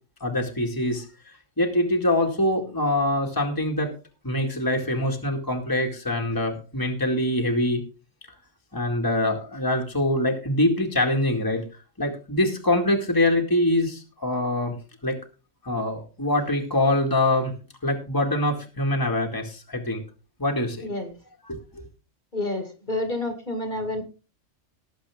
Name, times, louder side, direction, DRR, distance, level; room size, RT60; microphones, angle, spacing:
voice 1, 0.2-1.0 1.6-3.9 4.2-7.8 8.7-11.6 12.0-14.7 15.0-15.2 15.7-17.5 17.8-20.0 20.4-20.9 21.5-21.6, left 1 dB, 15° left, 1 dB, 2.0 m, -24 dB
voice 2, 22.3-24.0, left 2 dB, 40° left, 5 dB, 2.3 m, -29 dB
19.0 x 7.5 x 3.6 m, 0.33 s
omnidirectional pair, 1.3 m